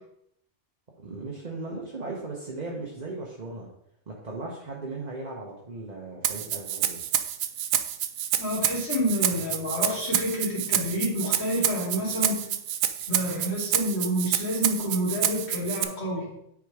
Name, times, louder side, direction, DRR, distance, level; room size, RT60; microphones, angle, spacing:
voice 1, 1.0-3.7 4.1-7.0, right 3 dB, 35° right, -2 dB, 1.1 m, -37 dB
Rattle (instrument), 6.2-15.8, right 10 dB, 85° right, 1.0 m, -28 dB
voice 2, 8.4-12.4 13.1-16.3, equal, 50° left, -6 dB, 2.8 m, -28 dB
9.2 x 3.8 x 4.8 m, 0.75 s
omnidirectional pair, 1.4 m